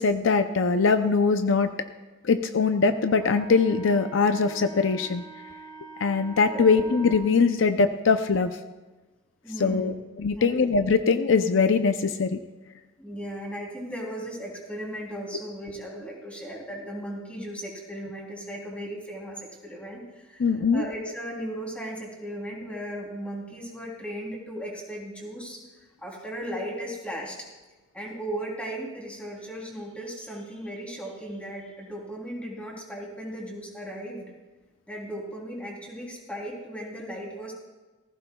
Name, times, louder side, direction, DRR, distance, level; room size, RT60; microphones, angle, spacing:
voice 1, 0.0-1.7 2.2-5.2 6.0-8.5 9.6-12.4 20.4-20.8, left 4 dB, 70° left, 8 dB, 0.5 m, -22 dB
Wind instrument woodwind instrument, 2.9-7.3, right 4 dB, 20° left, 3.5 m, -44 dB
voice 2, 9.4-9.9 10.3-10.6 13.0-25.6 26.0-27.5 27.9-34.3 34.9-37.5, equal, 5° left, -2 dB, 3.2 m, -36 dB
19.5 x 15.0 x 2.3 m, 1.2 s
head